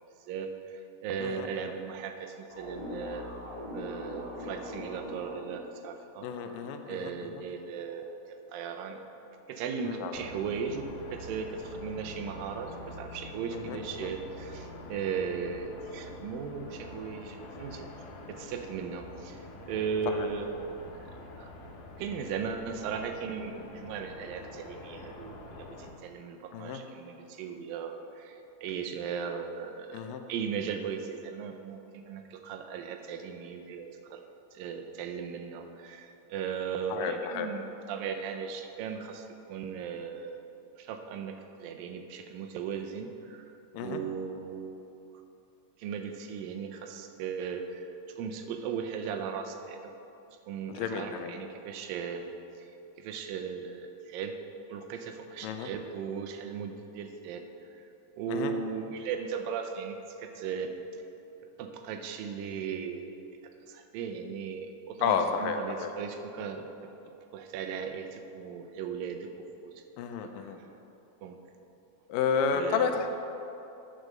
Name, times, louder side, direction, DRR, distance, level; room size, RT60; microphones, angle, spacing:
voice 1, 0.3-3.3 3.7-6.3 6.9-9.0 9.5-17.9 18.3-20.6 21.1-21.5 22.0-30.0 30.3-34.2 34.5-40.4 40.8-44.8 45.8-49.9 50.5-52.3 53.0-54.3 54.7-57.4 58.2-60.7 61.6-63.1 63.4-69.8 70.2-70.5 71.2-71.4 72.5-72.9, right 6 dB, 90° right, 5 dB, 2.4 m, -37 dB
sound 1, 2.5-5.6, left 1 dB, 15° right, 1.5 m, -41 dB
voice 2, 6.2-7.4 9.9-10.3 13.5-14.1 20.1-20.3 26.5-26.8 29.9-30.2 36.9-37.5 43.7-44.0 50.7-51.3 55.4-55.7 58.3-58.5 65.0-65.9 70.0-70.6 72.1-73.1, left 6 dB, 90° left, 6 dB, 2.3 m, -31 dB
sound 2, 10.1-25.9, left 2 dB, 70° left, 2.2 m, -46 dB
8.1 x 6.3 x 6.5 m, 2.9 s
omnidirectional pair, 3.9 m